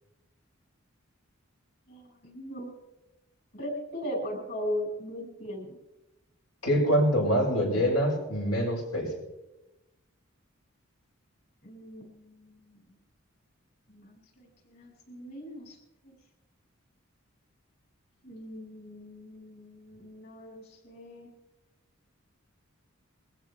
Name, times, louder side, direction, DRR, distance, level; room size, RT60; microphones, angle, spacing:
voice 1, 1.9-2.7 3.5-5.7 11.6-12.8 13.9-15.8 16.0-16.1 18.2-21.3, equal, 50° left, -1 dB, 7.0 m, -39 dB
voice 2, 6.6-9.1, equal, 90° left, -1 dB, 6.4 m, -25 dB
23.0 x 15.5 x 3.5 m, 0.95 s
head